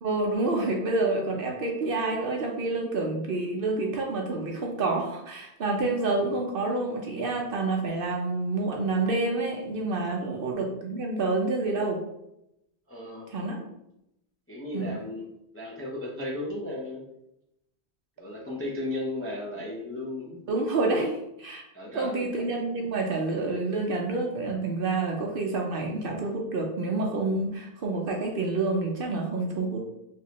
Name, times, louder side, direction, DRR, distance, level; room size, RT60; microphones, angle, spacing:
voice 1, 0.0-12.0 13.3-13.6 14.7-15.0 20.5-21.1 21.4-21.6 21.9-29.9, right 3 dB, 60° right, 0 dB, 0.7 m, -28 dB
voice 2, 12.9-13.3 14.5-15.2 15.5-17.0 18.2-20.4 20.8-21.1 21.7-22.3, left 1 dB, 20° left, -3 dB, 0.4 m, -35 dB
3.3 x 3.0 x 2.8 m, 0.84 s
omnidirectional pair, 1.1 m